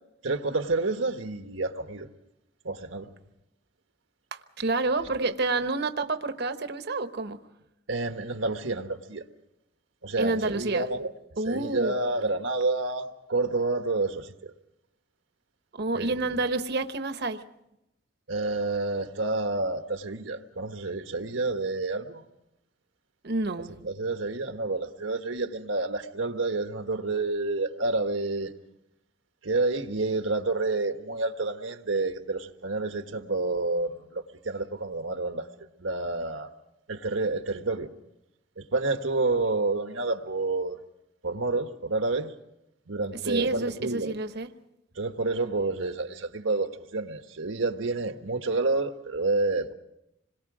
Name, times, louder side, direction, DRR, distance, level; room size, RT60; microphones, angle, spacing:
voice 1, 0.2-2.1 2.6-3.1 7.9-9.2 10.0-11.1 11.4-14.5 15.9-16.1 18.3-22.3 23.8-28.5 29.4-35.5 35.8-36.5 36.9-37.9 38.6-40.8 41.2-42.3 42.9-44.1 45.0-49.7, right 3 dB, 85° right, 1.4 m, -29 dB
voice 2, 4.3-7.4 10.2-10.9 11.4-12.0 15.7-17.4 23.2-23.8 43.1-44.5, right 3 dB, 60° right, 1.1 m, -29 dB
27.0 x 22.0 x 4.9 m
head